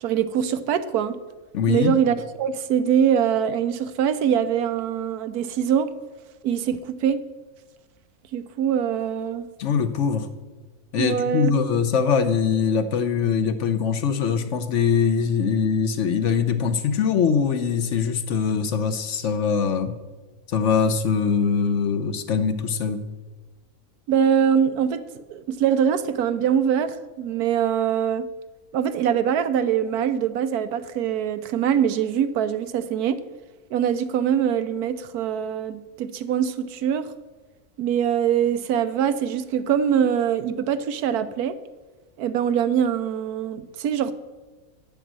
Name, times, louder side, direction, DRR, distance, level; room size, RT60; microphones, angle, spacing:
voice 1, 0.0-1.2 1.7-5.9 6.4-7.2 8.3-9.5 11.0-11.5 24.1-25.0 25.3-28.3 28.7-33.2 33.7-37.1 37.8-41.6 42.2-44.1, right 8 dB, 90° right, 12 dB, 1.2 m, -23 dB
voice 2, 1.5-1.9 9.6-10.3 10.9-20.0 20.5-23.0, left 6 dB, 60° left, 10 dB, 0.9 m, -22 dB
9.2 x 7.1 x 7.4 m, 1.2 s
omnidirectional pair, 1.6 m